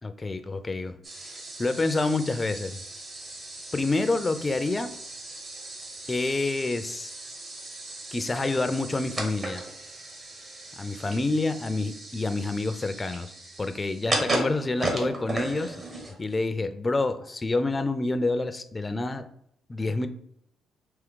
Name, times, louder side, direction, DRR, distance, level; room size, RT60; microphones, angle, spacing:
voice 1, 0.0-2.8 3.7-4.9 6.1-7.1 8.1-9.6 10.8-13.3 13.6-15.8 16.2-19.3 19.7-20.1, left 2 dB, 20° left, 10 dB, 0.3 m, -28 dB
sound 1, 1.0-16.4, right 2 dB, 40° right, 1.0 m, -36 dB
3.5 x 2.8 x 3.7 m, 0.71 s
cardioid pair, 100°, 0 cm